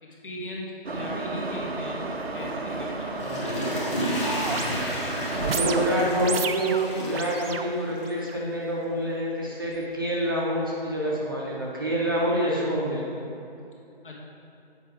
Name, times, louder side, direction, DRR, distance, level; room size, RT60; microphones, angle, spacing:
voice 1, 0.0-2.0 2.3-3.2 5.3-5.8 14.0-14.1, left 1 dB, 60° left, -3 dB, 1.8 m, -38 dB
Subway metro underground, 0.8-6.4, right 3 dB, 85° right, 0.9 m, -32 dB
Water / Toilet flush, 3.0-8.3 8.7-8.8, equal, 30° left, 1.5 m, -32 dB
voice 2, 3.2-3.5 4.4-4.7 5.4-13.1, equal, 20° right, -5 dB, 0.6 m, -27 dB
sound 1, 4.2-8.4 9.0-9.1, right 6 dB, 70° right, 0.5 m, -33 dB
7.5 x 4.9 x 4.9 m, 2.8 s
figure-of-eight pair, 160°, 30 cm